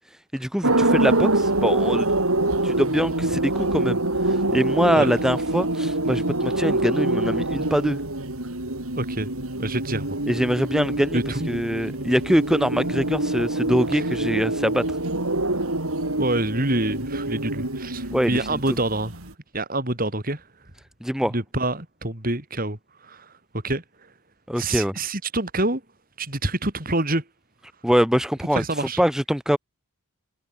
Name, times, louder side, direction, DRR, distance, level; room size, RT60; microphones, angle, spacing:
voice 1, 0.3-2.1 2.6-4.0 4.5-8.0 10.3-11.2 11.5-14.8 18.1-18.6 21.0-21.3 24.5-24.9 27.8-28.6 29.0-29.6, equal, ahead, 4.8 m, -23 dB
sound 1, 0.6-19.3, right 2 dB, 80° right, 4.7 m, -25 dB
voice 2, 9.0-9.3 9.6-10.2 11.1-11.5 13.9-14.1 16.2-19.1 19.5-20.4 21.2-22.8 23.0-23.3 23.6-23.8 24.6-25.8 26.2-27.2 28.5-29.0, right 2 dB, 40° right, 4.0 m, -26 dB
head